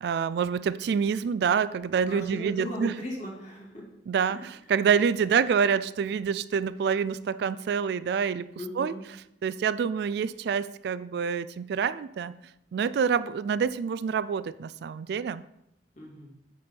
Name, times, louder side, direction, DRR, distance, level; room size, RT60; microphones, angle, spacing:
voice 1, 0.0-2.9 4.1-8.5 8.7-12.3 12.7-15.4, right 6 dB, 65° right, 16 dB, 0.3 m, -27 dB
voice 2, 2.0-3.8 4.3-4.4 8.5-9.0 16.0-16.3, left 1 dB, 40° left, -2 dB, 2.4 m, -37 dB
8.3 x 4.5 x 5.3 m, 0.81 s
head